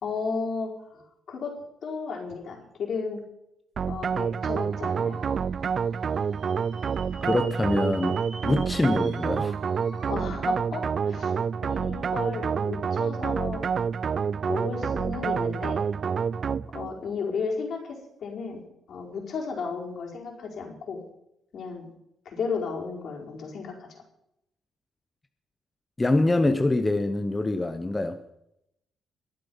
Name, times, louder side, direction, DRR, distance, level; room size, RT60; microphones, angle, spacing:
voice 1, 0.0-1.0 1.3-3.2 3.9-5.2 10.1-11.3 11.6-13.6 14.5-15.8 16.7-18.6 18.9-21.0 21.5-21.9 22.2-24.0, left 5 dB, 60° left, 0 dB, 4.5 m, -34 dB
sound 1, 3.8-16.9, right 6 dB, 50° right, 0.4 m, -28 dB
sound 2, 4.5-10.1, right 4 dB, 70° right, 4.6 m, -47 dB
voice 2, 7.2-9.6 26.0-28.2, left 2 dB, 20° left, 8 dB, 1.0 m, -25 dB
22.5 x 7.7 x 5.5 m, 0.81 s
cardioid pair, 90°, 0 cm